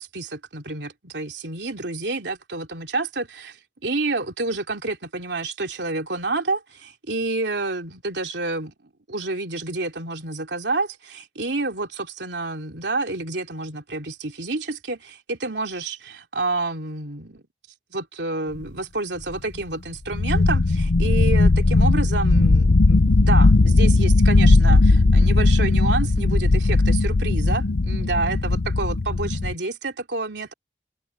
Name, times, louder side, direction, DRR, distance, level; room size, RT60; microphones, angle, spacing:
voice 1, 0.0-3.6 3.8-17.4 17.9-30.5, right 3 dB, 85° right, 3.0 m, -29 dB
sound 1, 19.3-19.4 19.6-19.7 20.1-29.5, left 2 dB, 75° left, 0.7 m, -17 dB
head